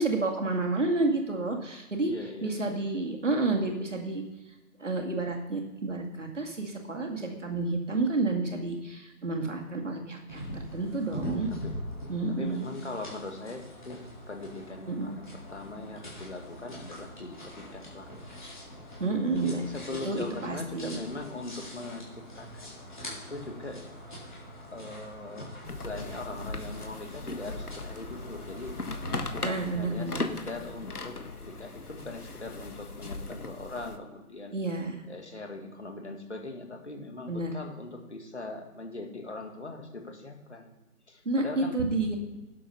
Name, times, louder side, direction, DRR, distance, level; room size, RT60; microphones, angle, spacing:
voice 1, 0.0-2.1 2.4-4.2 4.8-11.5 12.1-12.7 14.9-15.2 19.0-19.6 20.0-21.0 29.4-30.2 34.5-35.0 37.3-37.5 41.3-42.2, right 2 dB, 55° right, 2 dB, 2.2 m, -30 dB
voice 2, 2.0-2.7 11.2-11.3 11.6-11.7 12.3-14.0 14.3-18.1 19.3-23.9 24.7-28.8 29.3-34.5 35.1-40.7 41.1-41.8, left 2 dB, 50° left, 4 dB, 2.1 m, -41 dB
sound 1, 10.3-29.2, equal, 30° left, 3.8 m, -43 dB
sound 2, 25.6-34.0, left 3 dB, 75° left, 1.4 m, -38 dB
11.0 x 7.7 x 5.6 m, 1.0 s
figure-of-eight pair, 175°, 45 cm